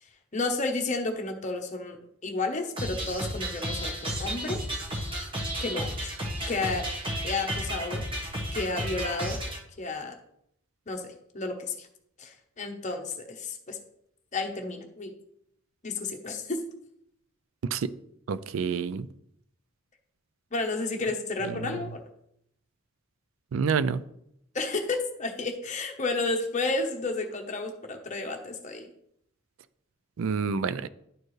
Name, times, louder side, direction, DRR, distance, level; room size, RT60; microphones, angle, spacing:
voice 1, 0.3-4.6 5.6-6.1 6.5-6.9 7.2-8.0 8.5-9.4 9.8-10.2 10.9-11.9 12.2-13.8 14.3-15.1 15.8-16.6 20.5-22.0 24.5-28.9, left 3 dB, 35° left, 3 dB, 0.9 m, -31 dB
sound 1, 2.8-9.6, equal, 25° right, 1.2 m, -33 dB
voice 2, 18.3-19.1 21.6-21.8 23.5-24.0 30.2-30.9, right 6 dB, 75° right, 15 dB, 0.4 m, -28 dB
10.5 x 4.4 x 3.2 m, 0.75 s
head